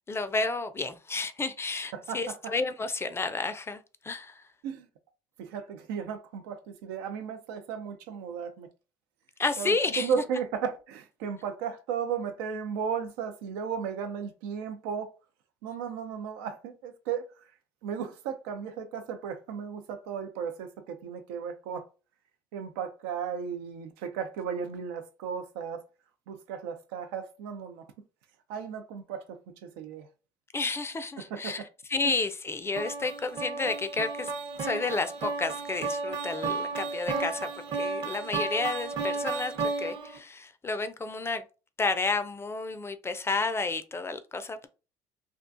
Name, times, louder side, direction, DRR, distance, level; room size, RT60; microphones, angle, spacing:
voice 1, 0.0-4.4 9.4-10.2 30.5-34.3 34.6-41.4 41.8-44.7, left 3 dB, 20° left, 0.4 m, -31 dB
voice 2, 1.9-2.5 4.6-4.9 5.4-8.7 9.6-15.1 15.6-17.5 17.8-21.9 22.5-25.9 26.3-27.9 28.5-30.1 31.2-31.7 32.0-32.1, right 7 dB, 85° right, 0.4 m, -35 dB
sound 1, 32.8-40.2, right 4 dB, 45° right, 0.7 m, -33 dB
2.3 x 2.2 x 2.5 m
hypercardioid pair, 70°, 12 cm